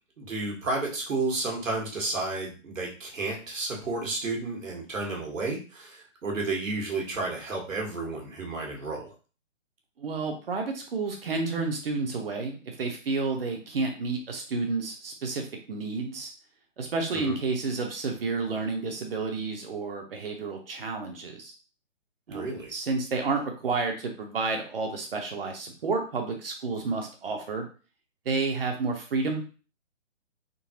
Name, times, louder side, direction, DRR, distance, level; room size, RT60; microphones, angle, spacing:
voice 1, 0.2-9.1 17.1-17.3 22.3-22.7, right 3 dB, 85° right, -1 dB, 1.4 m, -32 dB
voice 2, 10.0-16.3 16.8-21.5 22.3-27.6 28.3-29.4, right 4 dB, 50° right, 3 dB, 0.7 m, -30 dB
3.7 x 2.3 x 2.8 m, 0.35 s
hypercardioid pair, 155°, 38 cm